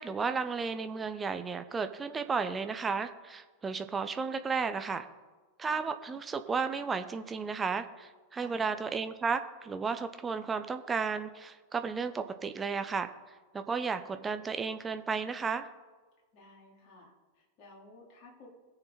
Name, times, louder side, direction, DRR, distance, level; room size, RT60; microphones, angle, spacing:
voice 1, 0.0-5.1 5.6-13.1 13.5-15.7, right 5 dB, 15° right, 9 dB, 1.0 m, -33 dB
voice 2, 8.3-8.6 16.3-18.5, left 2 dB, 40° left, -3 dB, 4.1 m, -55 dB
21.0 x 7.1 x 4.3 m, 1.3 s
figure-of-eight pair, 90°, 0 cm